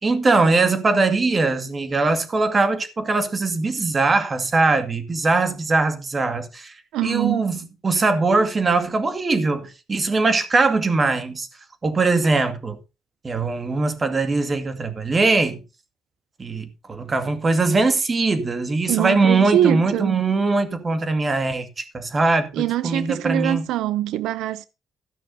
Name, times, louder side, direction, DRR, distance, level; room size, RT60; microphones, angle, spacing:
voice 1, 0.0-6.7 7.0-11.5 11.8-12.8 13.2-15.6 16.4-23.7, right 3 dB, 30° right, 2.2 m, -21 dB
voice 2, 6.9-7.5 18.9-20.2 22.5-24.7, right 12 dB, 90° right, 0.5 m, -23 dB
14.0 x 6.0 x 5.4 m
cardioid pair, 90°, 0 cm